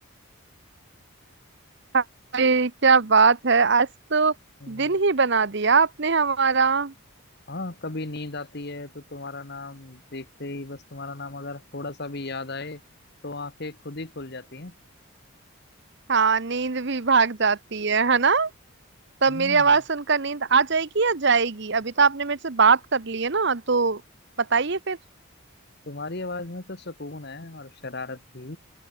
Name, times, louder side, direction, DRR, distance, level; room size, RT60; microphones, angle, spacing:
voice 1, 2.3-4.3 4.7-6.9 16.1-18.5 19.2-24.0 24.5-25.0, right 5 dB, 50° right, 0.9 m, -21 dB
voice 2, 4.6-4.9 7.5-12.8 13.2-14.7 19.3-19.8 25.9-28.6, left 2 dB, 50° left, 1.5 m, -36 dB
open air
head